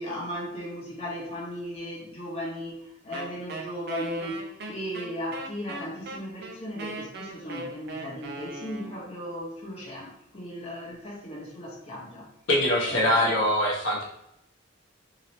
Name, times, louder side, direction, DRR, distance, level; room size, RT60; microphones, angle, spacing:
voice 1, 0.0-12.3 12.9-13.0, equal, 30° left, -4 dB, 1.1 m, -36 dB
Wind instrument woodwind instrument, 3.1-9.2, right 1 dB, 50° right, 0.6 m, -38 dB
voice 2, 12.5-14.0, left 1 dB, 65° left, -3 dB, 0.8 m, -23 dB
3.0 x 2.8 x 4.1 m, 0.78 s
head